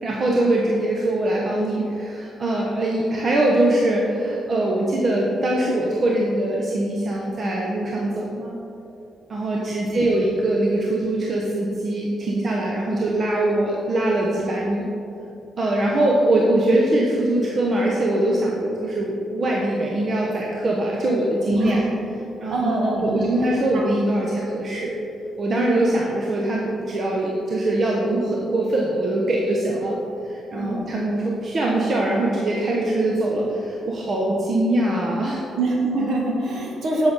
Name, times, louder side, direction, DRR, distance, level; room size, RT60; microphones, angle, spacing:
voice 1, 0.0-8.5 9.3-14.8 15.6-21.8 22.4-22.7 23.0-24.9 25.4-30.0 30.2-35.4, right 1 dB, 50° right, -2 dB, 1.1 m, -22 dB
voice 2, 21.5-22.0 22.5-23.3 23.7-23.9 30.5-30.8 35.5-37.1, right 2 dB, 70° right, -1 dB, 1.7 m, -24 dB
7.8 x 7.0 x 4.2 m, 2.8 s
supercardioid pair, 55°, 0 cm